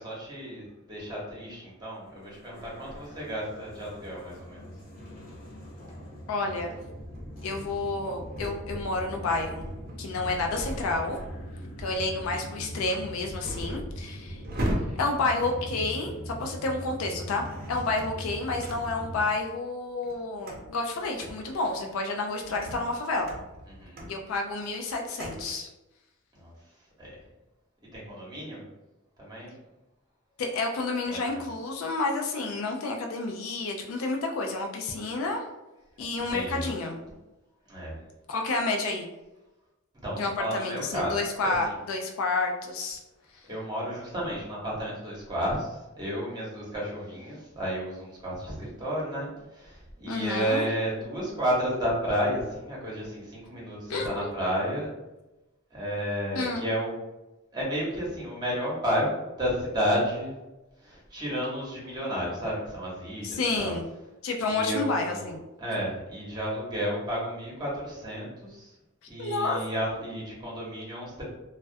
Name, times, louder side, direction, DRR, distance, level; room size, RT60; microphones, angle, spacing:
voice 1, 0.0-4.7 23.7-24.0 26.3-26.5 27.0-27.2 27.9-28.6 29.2-29.6 31.1-31.4 36.1-36.7 37.7-38.0 40.0-41.7 43.5-54.9 55.7-56.9 57.5-60.3 60.8-63.7 64.5-65.3 65.6-68.8 69.1-71.2, equal, 20° right, -5 dB, 0.8 m, -32 dB
sound 1, 2.1-19.3, equal, 45° left, 0.9 m, -41 dB
voice 2, 6.3-6.7 7.4-9.7 10.0-11.2 11.8-14.4 15.0-23.3 24.1-25.7 30.4-35.4 36.0-37.0 38.3-39.1 40.2-43.0 50.0-50.7 53.9-54.3 56.4-56.6 63.2-63.8 64.2-65.4 69.2-69.6, left 3 dB, 70° left, 3 dB, 0.3 m, -30 dB
sound 2, 6.7-16.5 17.2-19.4 19.8-25.5, equal, 45° right, 0.5 m, -39 dB
2.3 x 2.1 x 2.5 m, 1.0 s
head